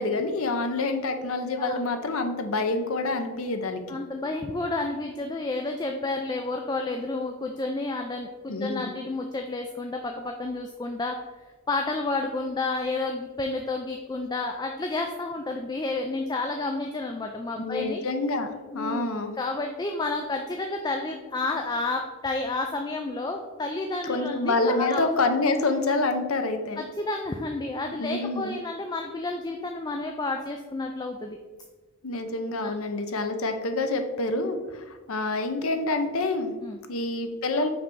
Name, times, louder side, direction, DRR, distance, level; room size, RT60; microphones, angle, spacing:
voice 1, 0.0-4.0 8.5-8.9 17.6-19.3 24.1-26.8 28.0-28.6 32.0-36.5 36.9-37.7, left 2 dB, 70° left, 7 dB, 0.7 m, -27 dB
voice 2, 3.9-11.2 11.7-18.0 18.7-19.1 19.4-25.1 26.8-31.4 32.6-32.7 34.4-34.5 36.6-36.8, left 2 dB, 20° left, 3 dB, 0.3 m, -30 dB
5.8 x 3.3 x 5.3 m, 1.3 s
head